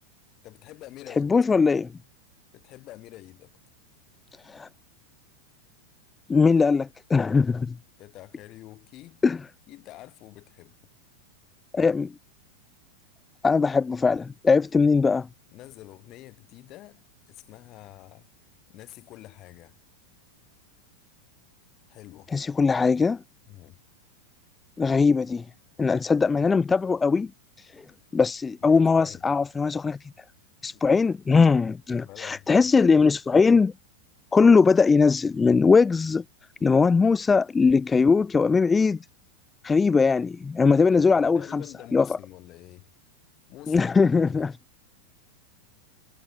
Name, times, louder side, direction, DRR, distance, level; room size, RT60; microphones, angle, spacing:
voice 1, 0.4-1.7 2.5-3.5 8.0-9.2 9.7-10.9 15.5-18.3 18.7-19.7 21.9-22.3 23.5-23.8 28.6-29.2 30.7-30.8 32.0-32.7 40.6-42.9 43.5-44.5, left 16 dB, 35° left, 4.5 m, -47 dB
voice 2, 1.1-1.9 4.4-4.7 6.3-7.8 9.2-9.4 11.7-12.1 13.4-15.3 22.3-23.2 24.8-25.4 25.8-27.3 27.6-27.8 28.1-30.1 30.6-33.7 34.3-36.2 36.6-39.0 39.6-41.6 41.9-42.1 43.7-44.5, left 4 dB, 15° left, 0.5 m, -20 dB
figure-of-eight pair, 90°, 0 cm